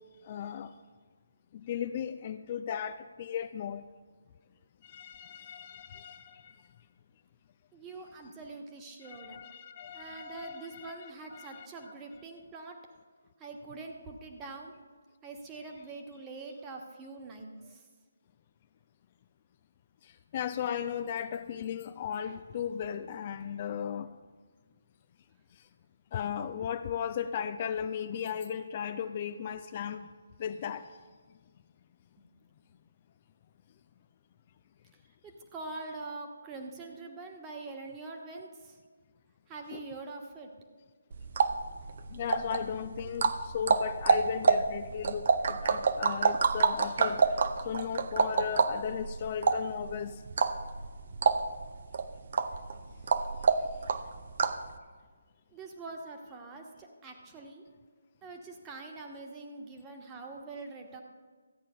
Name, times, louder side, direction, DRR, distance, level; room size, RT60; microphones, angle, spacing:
voice 1, 0.2-0.7 1.5-3.8 4.8-6.6 9.0-11.7 20.3-24.1 26.1-30.1 30.4-30.9 39.7-39.8 42.1-47.3 47.6-50.2, left 8 dB, 35° left, 10 dB, 0.4 m, -36 dB
voice 2, 7.7-9.4 9.9-12.8 13.4-14.7 15.2-17.8 35.2-38.8 39.5-40.5 55.5-57.6 58.2-61.0, right 3 dB, 15° right, 2 dB, 1.3 m, -44 dB
sound 1, 41.1-54.7, right 5 dB, 50° right, 0.6 m, -28 dB
13.5 x 8.9 x 5.6 m, 1.5 s
figure-of-eight pair, 145°, 0 cm